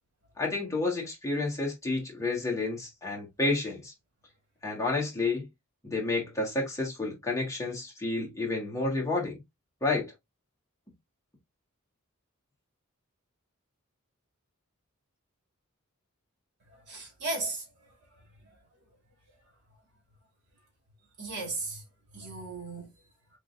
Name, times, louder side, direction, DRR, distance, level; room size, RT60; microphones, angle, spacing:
voice 1, 0.4-3.9 4.6-5.4 5.8-9.4 9.8-10.1, left 3 dB, 15° left, 1.6 m, -30 dB
voice 2, 16.9-17.6 21.2-21.8 22.1-22.9, right 2 dB, 55° right, 2.3 m, -35 dB
4.6 x 3.7 x 2.5 m
head